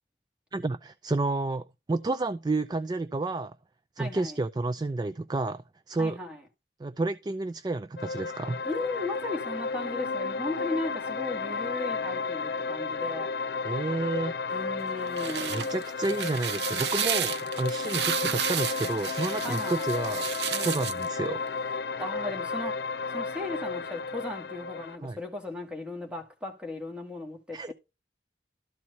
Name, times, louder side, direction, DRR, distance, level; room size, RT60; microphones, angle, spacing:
voice 1, 0.5-3.5 4.0-6.2 6.8-8.6 13.6-14.3 15.5-21.4 25.0-25.2 27.5-27.7, right 2 dB, 25° right, 0.3 m, -30 dB
voice 2, 4.0-4.4 6.0-6.4 8.6-13.3 14.5-15.8 19.4-19.9 20.5-20.9 22.0-27.7, left 2 dB, 5° right, 1.8 m, -36 dB
sound 1, 8.0-25.0, left 4 dB, 65° left, 0.4 m, -33 dB
sound 2, 14.9-21.1, right 9 dB, 75° right, 0.8 m, -32 dB
13.0 x 4.5 x 4.0 m
head